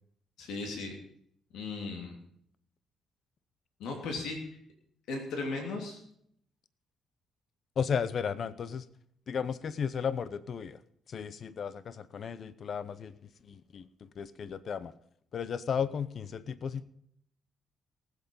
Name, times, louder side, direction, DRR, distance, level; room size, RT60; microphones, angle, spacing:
voice 1, 0.4-0.9 1.5-2.1 3.8-4.6 5.1-6.0, left 3 dB, 80° left, 2 dB, 2.8 m, -36 dB
voice 2, 7.8-8.9 9.3-10.8 11.1-13.1 13.5-13.9 14.2-14.9 15.3-16.8, left 7 dB, 55° left, 16 dB, 0.7 m, -34 dB
18.5 x 8.2 x 5.4 m, 0.68 s
cardioid pair, 90°, 0 cm